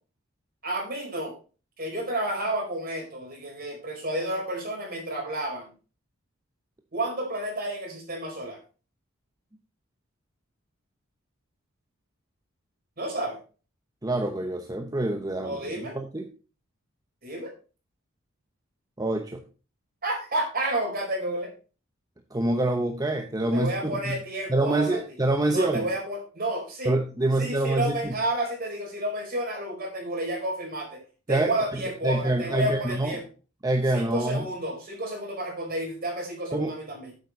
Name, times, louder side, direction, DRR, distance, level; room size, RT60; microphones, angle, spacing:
voice 1, 0.6-1.4 1.8-5.7 6.9-8.6 13.0-13.4 15.4-16.0 17.2-17.5 20.0-21.5 23.5-25.0 25.5-26.9 27.4-31.0 31.3-33.2 33.9-37.1, right 1 dB, 45° right, 1 dB, 4.7 m, -31 dB
voice 2, 14.0-16.3 19.0-19.4 22.3-24.2 24.5-25.9 26.8-28.1 31.3-33.2 33.6-34.5 36.5-36.8, right 2 dB, 20° right, 4 dB, 0.9 m, -26 dB
9.3 x 7.9 x 4.2 m, 0.35 s
head